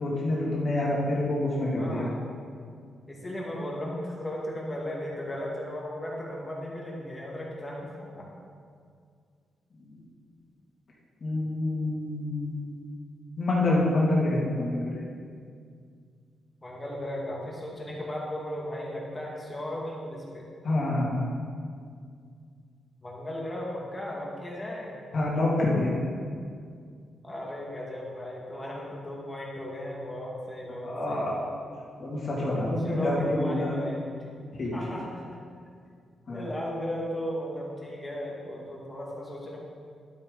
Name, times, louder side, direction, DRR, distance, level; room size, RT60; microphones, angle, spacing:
voice 1, 0.0-2.0 9.8-9.9 11.2-12.9 13.4-15.0 20.6-21.3 25.1-26.2 30.8-31.4 32.0-33.7 34.6-34.8 36.3-36.4, left 1 dB, 45° left, -5 dB, 2.9 m, -27 dB
voice 2, 1.8-2.2 3.1-8.3 16.6-20.4 23.0-24.9 27.2-31.2 32.8-34.1 34.7-35.4 36.3-39.6, left 1 dB, 20° left, -3 dB, 2.3 m, -36 dB
12.0 x 8.6 x 4.2 m, 2.2 s
cardioid pair, 120°, 0 cm